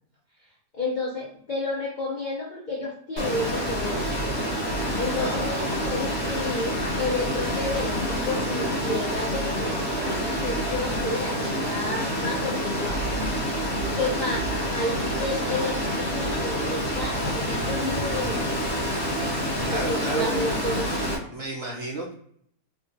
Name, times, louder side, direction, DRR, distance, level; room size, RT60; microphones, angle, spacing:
voice 1, 0.7-4.3 4.9-13.0 14.0-18.6 19.5-20.9, left 2 dB, 80° left, -4 dB, 0.4 m, -31 dB
Water, 3.2-21.2, equal, 20° left, 0.7 m, -27 dB
voice 2, 5.1-5.9 19.6-20.5 21.3-22.1, right 2 dB, 75° right, -3 dB, 0.5 m, -33 dB
3.5 x 2.1 x 2.6 m, 0.65 s
omnidirectional pair, 1.8 m